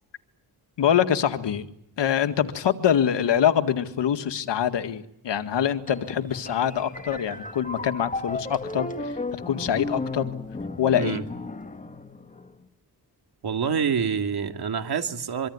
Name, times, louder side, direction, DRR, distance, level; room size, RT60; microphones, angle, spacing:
voice 1, 0.8-1.7 2.0-9.2 9.5-10.3 10.8-11.2, left 9 dB, 80° left, 9 dB, 1.9 m, -24 dB
sound 1, 5.9-12.6, left 2 dB, 20° left, 1.9 m, -34 dB
voice 2, 13.4-15.5, right 6 dB, 65° right, 6 dB, 2.5 m, -26 dB
25.0 x 24.5 x 9.6 m, 0.74 s
wide cardioid pair, 155°, 42 cm